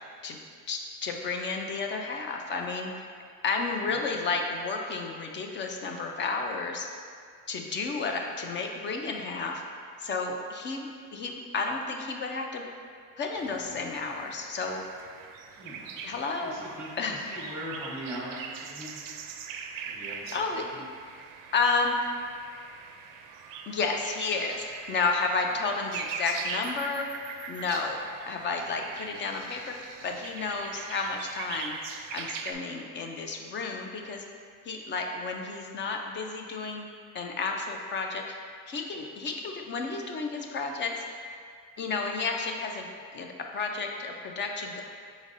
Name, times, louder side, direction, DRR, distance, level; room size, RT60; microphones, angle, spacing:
voice 1, 0.7-2.9 3.4-6.9 7.5-9.6 10.0-12.6 13.2-14.8 16.0-16.6 17.0-17.2 20.3-20.7 21.5-22.0 23.7-27.1 27.5-28.0 28.3-29.8 30.0-31.8 32.1-34.3 34.7-36.9 37.1-38.4 38.7-41.0 41.8-42.9 43.1-44.8, left 4 dB, 30° left, 2 dB, 0.4 m, -31 dB
sound 1, 13.3-32.5, right 6 dB, 55° right, 0.4 m, -42 dB
voice 2, 15.6-15.9 16.4-19.0 19.8-20.8, right 1 dB, 5° right, -7 dB, 1.0 m, -40 dB
5.1 x 4.0 x 2.5 m, 2.1 s
supercardioid pair, 105°, 41 cm